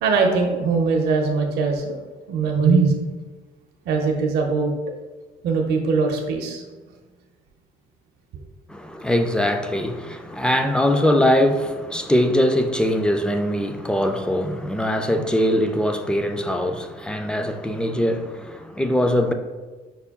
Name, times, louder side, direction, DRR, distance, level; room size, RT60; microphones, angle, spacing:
voice 1, 0.0-2.0 2.3-3.0 3.9-4.7 5.4-6.6 8.3-8.4, right 4 dB, 75° right, 0.6 m, -21 dB
voice 2, 8.7-19.3, left 1 dB, 5° left, 0.3 m, -22 dB
5.4 x 2.2 x 3.5 m
cardioid pair, 110°, 17 cm